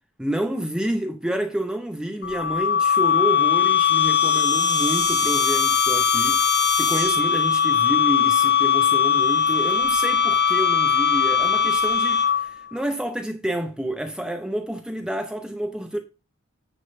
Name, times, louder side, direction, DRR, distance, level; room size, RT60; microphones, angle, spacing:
voice 1, 0.2-16.0, right 1 dB, 5° right, 0.7 m, -29 dB
sound 1, 2.2-12.6, left 7 dB, 50° left, 1.1 m, -20 dB
9.9 x 3.6 x 5.3 m
head